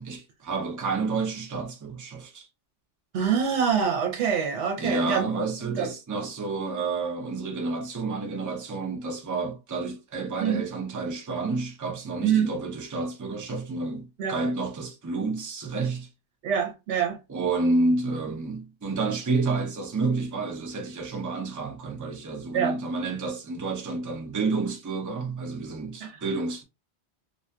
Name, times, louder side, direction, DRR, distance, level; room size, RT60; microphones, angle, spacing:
voice 1, 0.0-2.5 4.8-16.1 17.3-26.6, right 3 dB, 25° right, 0.4 m, -29 dB
voice 2, 3.1-5.3 5.8-5.9 10.4-10.7 12.2-12.5 14.2-14.4 16.4-17.2 22.5-22.8 26.0-26.2, right 7 dB, 75° right, 1.0 m, -25 dB
2.6 x 2.3 x 2.2 m
omnidirectional pair, 1.2 m